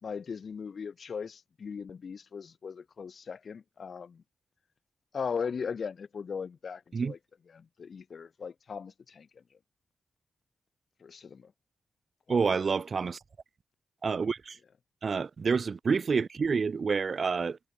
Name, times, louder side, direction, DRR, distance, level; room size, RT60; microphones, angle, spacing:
voice 1, 0.0-4.2 5.1-7.2 7.5-9.3 11.0-11.5 12.3-12.5, left 6 dB, 65° left, 5.5 m, -38 dB
voice 2, 12.3-13.2 14.0-14.6 15.0-17.6, right 5 dB, 55° right, 1.1 m, -28 dB
cardioid pair, 70°, 0 cm